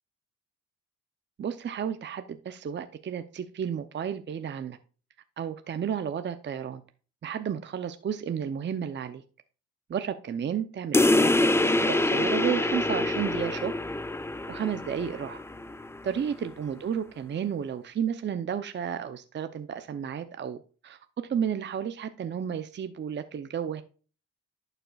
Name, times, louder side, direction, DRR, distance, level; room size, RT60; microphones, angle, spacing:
voice 1, 1.4-4.8 5.4-6.8 7.2-9.2 9.9-13.7 14.5-15.4 16.0-20.6 20.8-23.8, right 8 dB, 35° right, 9 dB, 0.7 m, -32 dB
sound 1, 10.9-16.0, left 2 dB, 10° left, 0.5 m, -25 dB
11.5 x 6.6 x 2.4 m, 0.37 s
cardioid pair, 90°, 30 cm